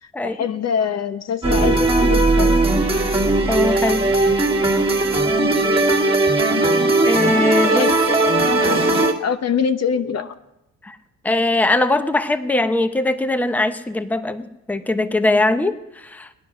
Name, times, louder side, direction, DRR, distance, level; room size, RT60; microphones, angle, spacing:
voice 1, 0.0-2.8 7.6-10.3, left 7 dB, 60° left, 10 dB, 1.0 m, -25 dB
sound 1, 1.4-9.1, right 2 dB, 20° right, 2.1 m, -18 dB
voice 2, 3.5-4.0 7.0-7.9 10.8-11.0 11.2-16.3, left 2 dB, 5° left, 10 dB, 0.8 m, -21 dB
17.0 x 11.0 x 6.2 m, 0.94 s
cardioid pair, 90°, 30 cm